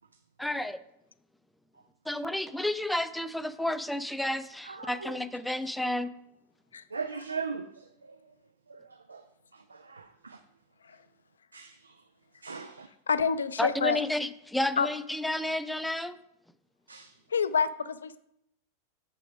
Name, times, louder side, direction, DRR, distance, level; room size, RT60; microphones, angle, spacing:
voice 1, 0.4-0.8 2.1-6.1 13.6-16.2, left 1 dB, 5° left, 0.4 m, -31 dB
voice 2, 4.6-5.2 6.9-8.3 8.7-9.2 9.5-10.4 11.5-12.0 12.4-12.9 16.9-17.1, right 5 dB, 75° right, 0.4 m, -40 dB
voice 3, 13.1-14.0 14.8-14.9 17.3-18.2, left 6 dB, 70° left, 0.4 m, -27 dB
6.9 x 6.0 x 5.0 m
figure-of-eight pair, 90°, 0 cm